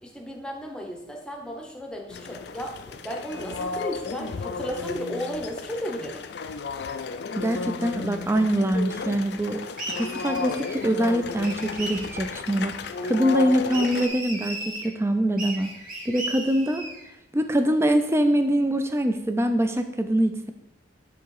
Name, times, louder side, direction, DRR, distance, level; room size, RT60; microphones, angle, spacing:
voice 1, 0.0-6.2, equal, 5° left, 1 dB, 0.7 m, -34 dB
sound 1, 2.1-14.1, left 5 dB, 60° left, 0.4 m, -33 dB
voice 2, 7.3-9.6 10.0-12.8 13.0-15.8 16.1-16.8 17.3-20.5, right 1 dB, 15° right, 7 dB, 0.4 m, -24 dB
sound 2, 9.8-10.9 11.4-12.4 13.7-14.9 15.4-17.1, right 1 dB, 45° right, 1.8 m, -36 dB
7.0 x 3.0 x 4.7 m, 0.90 s
head